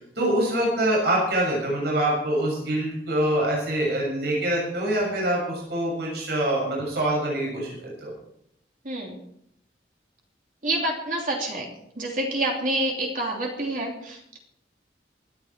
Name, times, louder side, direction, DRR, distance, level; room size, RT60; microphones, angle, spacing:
voice 1, 0.1-8.1, right 1 dB, 70° right, -4 dB, 6.8 m, -25 dB
voice 2, 8.8-9.2 10.6-11.7 12.0-14.4, right 1 dB, 50° right, 0 dB, 3.0 m, -28 dB
26.0 x 9.6 x 4.5 m, 0.73 s
head